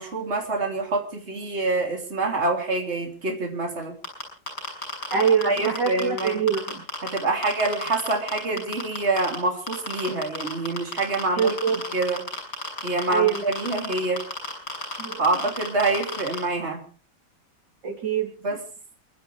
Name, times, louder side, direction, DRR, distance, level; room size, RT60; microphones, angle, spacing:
voice 1, 0.0-4.0 5.4-6.4 7.0-11.5 11.9-12.3 12.8-14.2 15.2-16.8 18.4-18.6, right 2 dB, 35° right, 1 dB, 3.5 m, -26 dB
sound 1, 4.0-7.2 7.4-9.4 9.7-16.4, left 2 dB, 60° left, 7.8 m, -31 dB
voice 2, 5.1-6.8 10.1-10.2 11.4-11.8 13.1-13.5 15.0-15.2 17.8-18.3, right 7 dB, 65° right, 2 dB, 3.7 m, -24 dB
28.5 x 12.0 x 3.4 m, 0.39 s
omnidirectional pair, 2.1 m